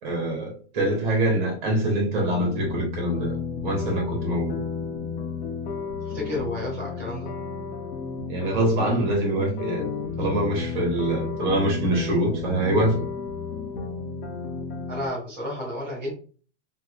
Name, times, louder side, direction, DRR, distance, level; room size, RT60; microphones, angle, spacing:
voice 1, 0.0-3.3 3.6-4.6 8.3-9.9 10.2-13.0, right 1 dB, 40° right, 1.6 m, -24 dB
sound 1, 1.7-15.1, left 5 dB, 50° left, 0.7 m, -32 dB
voice 2, 6.0-7.3 14.9-16.1, left 1 dB, 5° right, 0.5 m, -31 dB
3.5 x 2.8 x 2.4 m
supercardioid pair, 175°, 35 cm